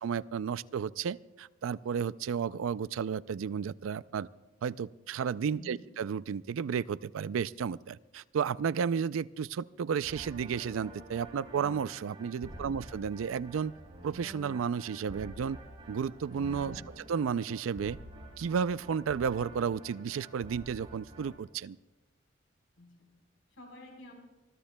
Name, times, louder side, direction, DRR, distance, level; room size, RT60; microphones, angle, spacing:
voice 1, 0.0-4.3 4.6-13.7 14.0-15.6 15.9-16.8 17.1-18.0 18.4-21.8, right 7 dB, 90° right, 18 dB, 0.4 m, -33 dB
voice 2, 5.5-5.8 12.4-12.8 16.6-16.9 22.8-23.1 23.5-24.1, left 1 dB, 85° left, 1 dB, 4.1 m, -51 dB
sound 1, 10.0-21.4, right 1 dB, 30° right, 4.8 m, -48 dB
25.0 x 20.5 x 2.2 m, 1.1 s
head